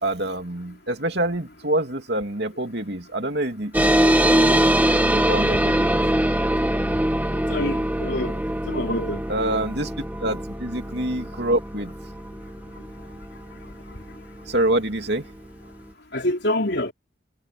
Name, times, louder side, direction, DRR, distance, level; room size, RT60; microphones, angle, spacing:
voice 1, 0.0-6.0 9.3-9.9 10.2-11.9 14.5-15.3, right 1 dB, 55° right, 2.9 m, -26 dB
sound 1, 3.7-14.7, right 1 dB, 10° right, 1.4 m, -23 dB
voice 2, 7.5-8.4 8.7-9.2 16.1-16.9, left 1 dB, 55° left, 4.5 m, -26 dB
head